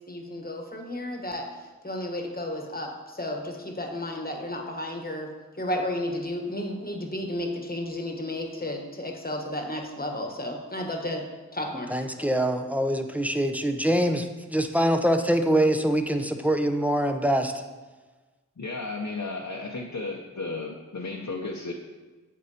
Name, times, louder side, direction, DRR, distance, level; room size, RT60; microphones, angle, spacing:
voice 1, 0.1-1.5 1.8-5.3 5.6-11.2 11.5-11.9, left 1 dB, 30° left, 2 dB, 1.1 m, -32 dB
voice 2, 11.9-17.5, right 1 dB, 5° right, 6 dB, 0.6 m, -24 dB
voice 3, 18.6-21.7, left 3 dB, 65° left, -1 dB, 0.8 m, -34 dB
8.2 x 7.7 x 2.9 m, 1.3 s
wide cardioid pair, 45°, 32 cm